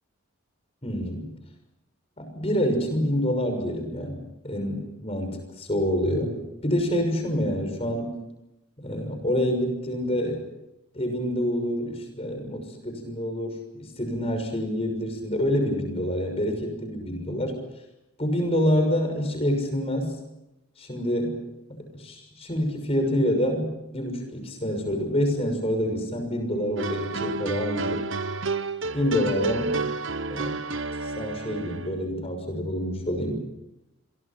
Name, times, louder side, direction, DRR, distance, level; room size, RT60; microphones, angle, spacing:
voice 1, 0.8-1.3 2.2-4.2 4.4-8.2 8.8-10.4 10.9-17.6 18.2-20.2 20.8-21.4 21.7-28.0 28.9-29.7 30.3-30.6 31.0-33.4, equal, 25° left, 6 dB, 6.3 m, -27 dB
sound 1, 26.8-31.9, right 3 dB, 55° right, 1.0 m, -30 dB
27.5 x 23.5 x 6.1 m, 0.89 s
head